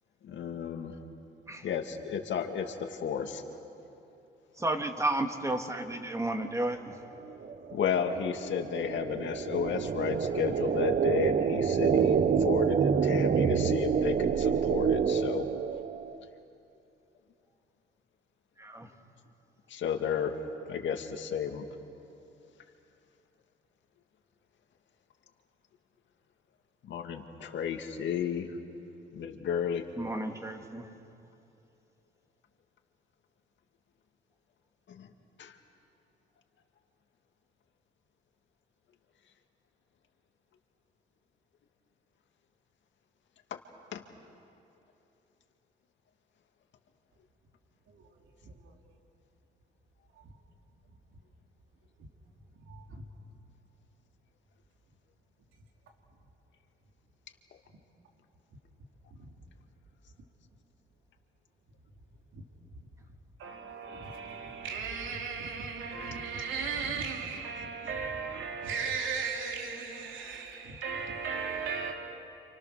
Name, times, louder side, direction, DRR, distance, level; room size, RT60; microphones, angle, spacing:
voice 1, 0.2-1.0 1.6-3.4 7.7-15.5 19.7-20.3 20.7-21.7 26.8-28.6 29.1-29.8 34.9-35.1 35.4-35.6 43.5-43.6 43.9-44.0, left 7 dB, 70° left, 2.2 m, -33 dB
voice 2, 4.6-7.0 18.6-18.9 30.0-30.9, right 1 dB, 15° right, 2.3 m, -32 dB
sound 1, 7.3-16.2, right 7 dB, 50° right, 1.0 m, -27 dB
voice 3, 48.4-48.7 50.2-50.3 52.7-53.0 59.1-59.3 62.3-62.4 63.4-71.9, right 5 dB, 80° right, 3.3 m, -36 dB
30.0 x 27.5 x 6.7 m
cardioid pair, 90°, 20 cm